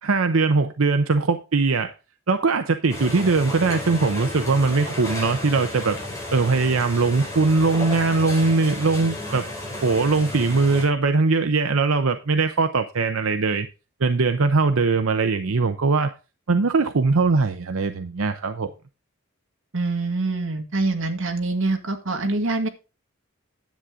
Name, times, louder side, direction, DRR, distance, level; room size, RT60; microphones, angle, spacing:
voice 1, 0.0-1.9 2.3-6.0 6.3-9.4 9.8-13.7 14.0-16.1 16.5-18.7, right 4 dB, 90° right, 0.7 m, -21 dB
sound 1, 2.9-10.8, left 1 dB, 15° left, 4.2 m, -33 dB
voice 2, 19.7-22.7, right 2 dB, 65° right, 1.9 m, -25 dB
10.5 x 8.3 x 3.7 m
head